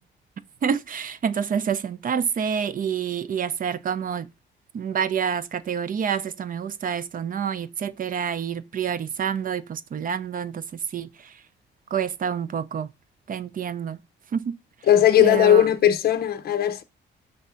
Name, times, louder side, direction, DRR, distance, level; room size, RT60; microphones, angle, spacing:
voice 1, 0.6-4.3 4.7-11.4 11.9-12.9 13.3-14.0 14.3-14.6 15.2-15.7, right 7 dB, 45° right, 0.6 m, -28 dB
voice 2, 14.9-16.8, left 10 dB, 50° left, 0.6 m, -18 dB
5.1 x 3.5 x 5.5 m
cardioid pair, 90°, 20 cm